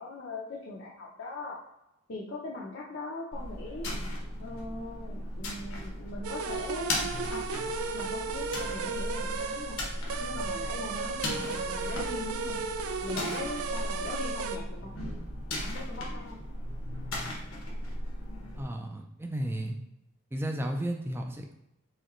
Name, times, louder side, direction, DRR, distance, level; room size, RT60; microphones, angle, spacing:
voice 1, 0.0-1.6 2.1-3.9 4.4-7.0 7.3-7.4 7.9-9.8 10.2-12.6 13.0-15.0 15.7-16.4, left 2 dB, 55° left, -4 dB, 0.6 m, -40 dB
sound 1, 3.3-18.6, left 1 dB, 80° left, 1.2 m, -37 dB
sound 2, 6.2-14.6, right 4 dB, 90° right, 0.4 m, -35 dB
voice 2, 18.6-19.8 20.3-21.5, right 1 dB, 10° right, 3 dB, 0.4 m, -33 dB
4.9 x 3.3 x 3.0 m, 0.86 s
head